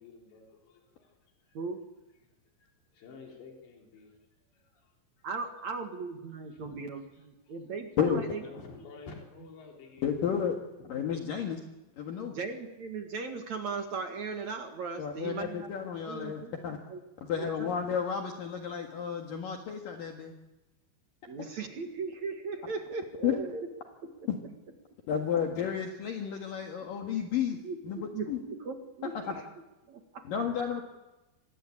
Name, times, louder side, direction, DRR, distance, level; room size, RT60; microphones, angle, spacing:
voice 1, 0.0-1.6 2.2-4.2 4.5-5.3 6.5-6.8 7.1-7.6 8.4-10.9, left 4 dB, 80° left, 0 dB, 6.3 m, -52 dB
voice 2, 5.2-8.4 12.3-15.7 16.1-17.0 17.4-17.7 21.3-23.7 24.0-24.3 27.6-29.4 29.9-30.3, right 4 dB, 50° right, 5 dB, 2.5 m, -38 dB
voice 3, 10.0-10.6 10.9-11.6 12.0-12.4 15.0-16.8 17.2-20.3 23.2-23.4 24.3-24.4 25.1-28.4 29.3-29.4 30.2-30.8, left 8 dB, 60° left, 2 dB, 3.1 m, -32 dB
26.5 x 20.5 x 8.7 m, 1.0 s
omnidirectional pair, 5.0 m